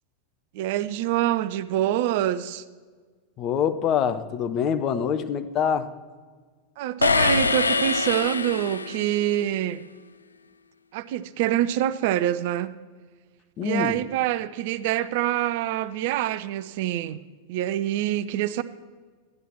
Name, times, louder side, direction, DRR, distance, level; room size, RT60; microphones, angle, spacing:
voice 1, 0.5-2.6 6.8-9.8 10.9-12.7 13.6-17.2 17.5-18.6, right 12 dB, 50° right, 15 dB, 0.5 m, -25 dB
voice 2, 3.4-5.9 13.6-14.0, left 7 dB, 35° left, 11 dB, 0.7 m, -25 dB
sound 1, 7.0-9.2, left 4 dB, 80° left, 0.4 m, -24 dB
13.0 x 10.0 x 4.4 m, 1.5 s
figure-of-eight pair, 90°, 0 cm